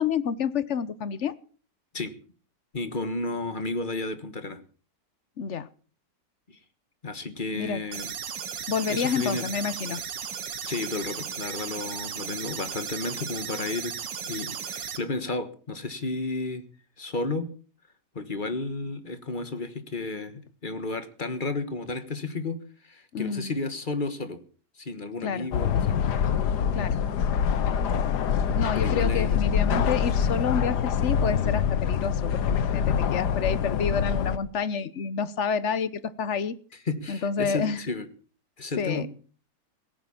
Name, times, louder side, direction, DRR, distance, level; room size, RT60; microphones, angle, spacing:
voice 1, 0.0-1.3 5.4-5.7 7.5-7.8 8.7-10.0 23.1-23.5 25.2-25.5 26.7-27.0 28.5-36.5 37.1-37.8 38.8-39.1, left 6 dB, 50° left, 16 dB, 1.0 m, -29 dB
voice 2, 2.7-4.6 6.5-6.6 7.0-8.1 8.8-9.4 10.6-13.9 14.2-16.6 17.0-17.5 18.1-24.4 24.8-26.0 28.7-29.4 36.9-38.1 38.6-39.1, left 3 dB, 30° left, 11 dB, 1.4 m, -32 dB
sound 1, 7.9-15.0, right 7 dB, 85° right, 2.0 m, -35 dB
sound 2, 25.5-34.4, left 7 dB, 70° left, 1.6 m, -25 dB
17.5 x 9.4 x 7.1 m, 0.41 s
omnidirectional pair, 1.9 m